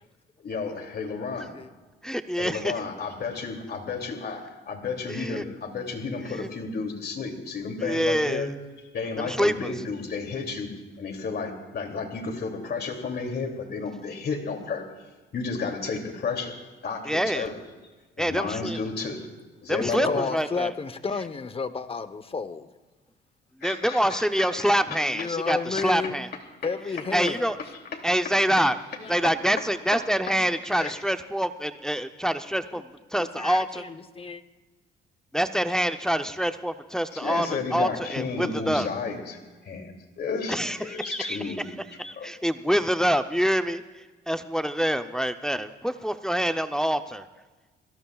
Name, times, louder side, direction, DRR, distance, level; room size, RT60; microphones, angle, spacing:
voice 1, 0.4-1.5 2.4-8.5 8.9-10.7 11.0-14.8 15.3-16.6 16.8-17.6 18.2-19.3 19.6-20.3 23.6-25.1 25.5-25.6 26.6-27.4 27.7-28.7 29.2-29.7 29.9-30.0 30.3-30.4 30.7-31.0 37.1-42.3, left 4 dB, 55° left, 2.8 m, -32 dB
voice 2, 2.0-2.7 5.1-5.4 6.3-6.5 7.8-8.5 9.2-9.7 17.1-17.5 18.2-18.8 19.7-20.7 23.6-26.3 27.1-27.6 28.0-28.8 29.1-33.8 35.3-38.9 40.5-41.6 42.0-47.3, equal, 5° left, 0.6 m, -26 dB
voice 3, 19.8-22.7 25.0-26.2 26.6-27.5 29.0-29.2 32.7-32.8 33.2-34.4, left 4 dB, 30° left, 1.0 m, -32 dB
27.5 x 17.5 x 2.4 m
cardioid pair, 90°, 20 cm